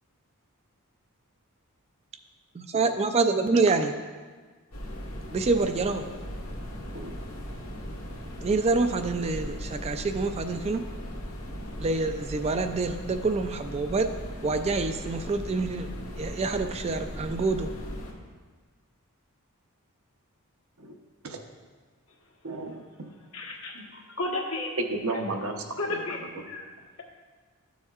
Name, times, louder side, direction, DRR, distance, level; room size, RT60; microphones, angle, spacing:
voice 1, 2.6-3.9 5.3-6.1 8.4-10.8 11.8-14.2 14.4-15.9 16.2-17.7, right 3 dB, 30° right, 8 dB, 0.3 m, -26 dB
sound 1, 4.7-18.1, equal, 85° left, 1.6 m, -38 dB
voice 2, 22.4-23.1 25.0-25.6 25.9-26.0, right 2 dB, 70° right, 3 dB, 0.9 m, -34 dB
voice 3, 23.3-24.7 25.1-25.2 25.8-26.2 26.5-26.7, left 2 dB, 70° left, -1 dB, 1.4 m, -33 dB
13.0 x 7.1 x 2.4 m, 1.4 s
head